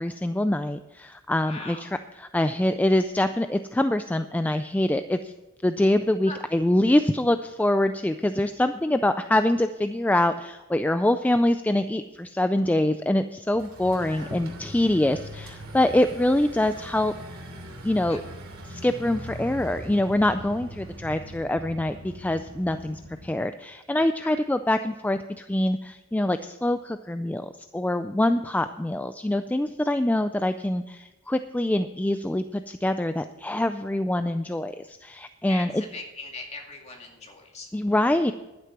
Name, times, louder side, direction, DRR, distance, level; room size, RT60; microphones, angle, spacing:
voice 1, 0.0-1.9 2.3-5.3 5.6-17.1 17.8-18.2 18.7-35.8 37.7-38.3, left 1 dB, 10° left, 10 dB, 0.3 m, -24 dB
voice 2, 1.4-1.9 6.3-6.4 14.1-14.3 18.1-18.2 24.2-24.4 35.5-37.7, left 3 dB, 30° left, 1 dB, 2.3 m, -40 dB
sound 1, 13.5-23.3, equal, 80° right, 2.7 m, -41 dB
11.5 x 9.5 x 5.9 m, 1.1 s
head